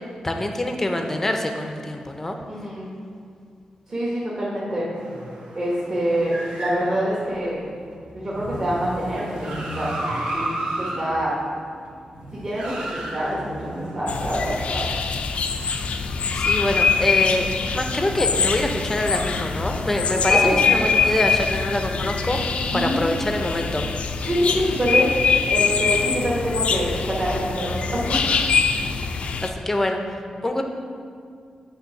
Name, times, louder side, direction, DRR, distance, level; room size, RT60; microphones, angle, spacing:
voice 1, 0.2-2.4 16.3-22.4 22.7-23.8 29.4-30.0 30.4-30.6, left 1 dB, 15° left, 4 dB, 0.6 m, -25 dB
voice 2, 2.5-3.0 3.9-4.9 5.5-7.6 8.1-11.3 12.3-14.9 20.3-20.6 22.7-23.0 24.2-25.1 25.5-28.3, equal, 35° right, -7 dB, 1.3 m, -26 dB
sound 1, 4.9-14.9 15.9-16.8, right 1 dB, 65° right, 1.4 m, -33 dB
sound 2, 14.1-29.5, left 5 dB, 65° left, 0.4 m, -23 dB
8.5 x 3.5 x 5.8 m, 2.2 s
wide cardioid pair, 160°, 2 cm